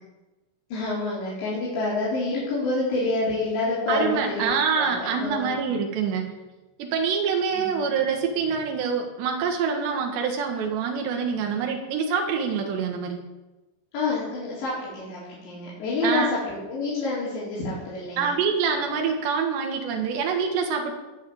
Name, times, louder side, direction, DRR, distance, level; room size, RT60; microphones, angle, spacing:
voice 1, 0.7-5.5 7.5-7.8 13.9-18.3, left 2 dB, 85° left, -8 dB, 6.5 m, -28 dB
voice 2, 3.9-6.3 6.8-13.2 16.0-16.3 18.2-20.9, right 6 dB, 80° right, 3 dB, 3.9 m, -25 dB
19.5 x 7.0 x 8.8 m, 1.1 s
omnidirectional pair, 4.9 m